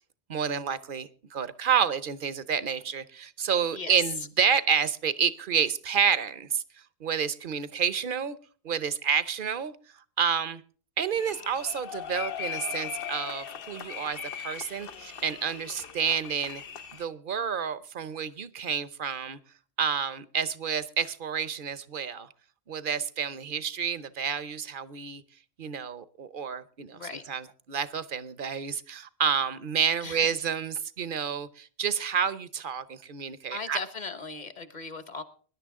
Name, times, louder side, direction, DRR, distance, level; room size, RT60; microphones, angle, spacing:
voice 1, 0.3-6.6 7.0-8.4 8.6-9.7 10.2-10.6 11.0-16.6 17.0-19.4 19.8-22.3 22.7-25.2 25.6-27.0 27.3-33.8, right 7 dB, 55° right, 1.0 m, -29 dB
sound 1, 11.2-17.0, left 9 dB, 60° left, 1.0 m, -39 dB
voice 2, 30.0-30.3 33.5-35.2, left 4 dB, 45° left, 1.4 m, -38 dB
20.5 x 11.0 x 3.6 m
omnidirectional pair, 1.1 m